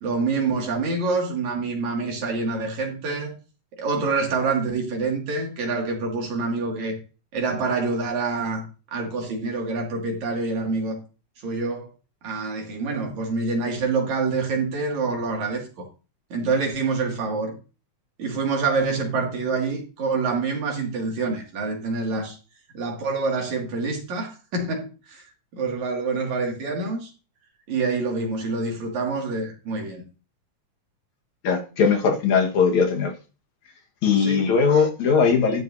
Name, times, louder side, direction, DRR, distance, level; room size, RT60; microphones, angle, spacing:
voice 1, 0.0-3.3 3.8-7.0 7.3-11.0 11.4-11.9 12.2-15.9 16.3-17.6 18.2-22.4 22.7-25.2 25.5-27.1 27.7-30.0 34.2-34.4, right 4 dB, 70° right, 3.5 m, -26 dB
voice 2, 31.4-33.1 34.0-35.6, left 5 dB, 70° left, 2.8 m, -20 dB
12.0 x 10.0 x 2.7 m
omnidirectional pair, 3.5 m